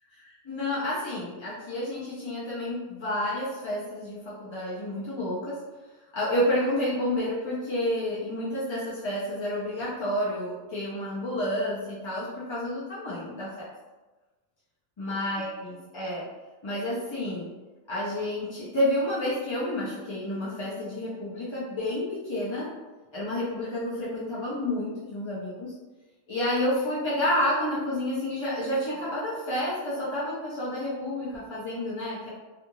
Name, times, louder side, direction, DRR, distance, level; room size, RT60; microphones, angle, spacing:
voice 1, 0.2-5.6 6.1-13.7 15.0-16.2 16.6-17.5 17.9-22.7 23.1-25.7 26.3-32.3, left 1 dB, 40° left, -8 dB, 0.4 m, -30 dB
2.5 x 2.4 x 2.9 m, 1.2 s
omnidirectional pair, 1.2 m